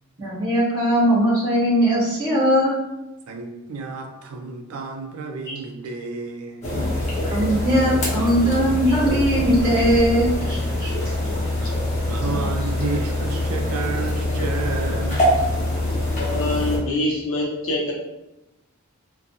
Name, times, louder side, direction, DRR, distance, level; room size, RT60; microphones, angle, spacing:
voice 1, 0.2-2.7 5.5-5.6 7.3-10.9, equal, 40° right, -8 dB, 0.9 m, -20 dB
voice 2, 3.3-6.7 11.3-11.7 12.1-15.4, right 4 dB, 85° right, 4 dB, 0.4 m, -31 dB
sound 1, 6.6-16.8, left 1 dB, 35° left, 0.8 m, -24 dB
voice 3, 16.2-17.9, left 1 dB, 65° left, -1 dB, 0.7 m, -25 dB
2.4 x 2.3 x 2.7 m, 0.96 s
head